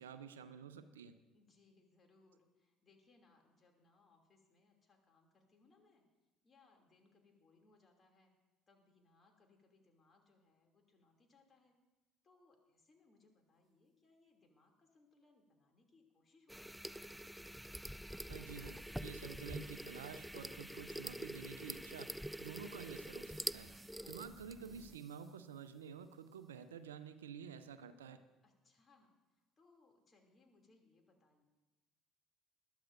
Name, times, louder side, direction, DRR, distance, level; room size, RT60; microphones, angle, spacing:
voice 1, 0.0-1.1 18.3-22.1 22.4-23.7 24.1-28.2, right 7 dB, 80° right, 12 dB, 0.5 m, -50 dB
voice 2, 1.3-6.0 6.4-8.3 8.7-11.7 12.2-17.1 23.8-24.4 28.4-31.4, left 3 dB, 35° left, 2 dB, 2.6 m, -70 dB
sound 1, 16.5-25.0, equal, 5° right, 0.3 m, -46 dB
sound 2, 18.1-21.5 23.2-26.7, right 3 dB, 20° right, 0.9 m, -67 dB
20.5 x 12.5 x 2.6 m, 1.1 s
figure-of-eight pair, 60°, 0 cm